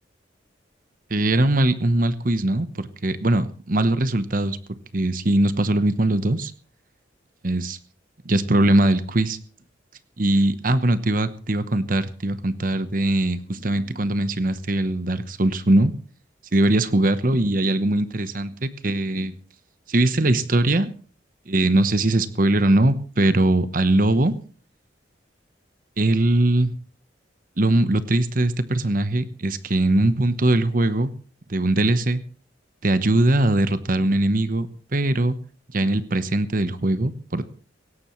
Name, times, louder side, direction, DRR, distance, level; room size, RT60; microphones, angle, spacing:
voice 1, 1.1-4.6 4.9-6.5 7.4-7.8 8.2-9.4 10.2-15.9 16.5-19.3 19.9-20.9 21.5-24.3 26.0-26.7 27.6-31.1 31.5-32.2 32.8-34.7 34.9-35.4 35.7-37.4, right 1 dB, 45° right, 13 dB, 1.0 m, -21 dB
17.5 x 17.5 x 3.2 m, 0.40 s
head